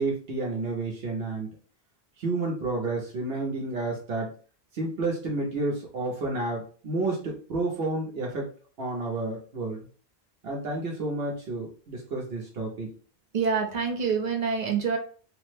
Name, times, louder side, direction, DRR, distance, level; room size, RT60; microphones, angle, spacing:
voice 1, 0.0-1.5 2.2-4.3 4.7-8.5 8.8-9.9 10.4-12.9, right 2 dB, 70° right, -2 dB, 1.0 m, -30 dB
voice 2, 13.3-15.0, right 6 dB, 50° right, 2 dB, 0.7 m, -26 dB
3.3 x 2.1 x 3.2 m, 0.41 s
omnidirectional pair, 1.1 m